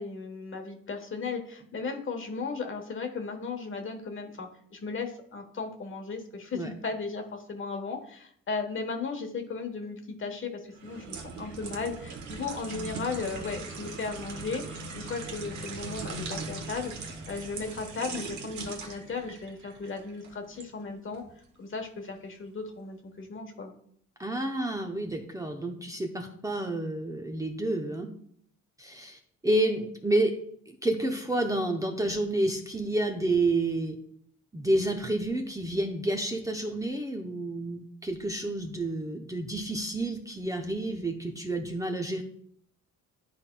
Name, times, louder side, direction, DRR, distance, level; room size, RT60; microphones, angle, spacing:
voice 1, 0.0-16.9 17.3-21.2 21.6-23.7, left 4 dB, 40° left, 5 dB, 1.2 m, -36 dB
sound 1, 10.7-20.7 21.1-21.3, right 4 dB, 70° right, 1.2 m, -40 dB
voice 2, 24.2-28.1 28.8-30.3 30.7-34.0 34.5-42.2, right 1 dB, 10° right, 2 dB, 0.7 m, -29 dB
11.0 x 4.1 x 2.2 m, 0.65 s
cardioid pair, 90°, 30 cm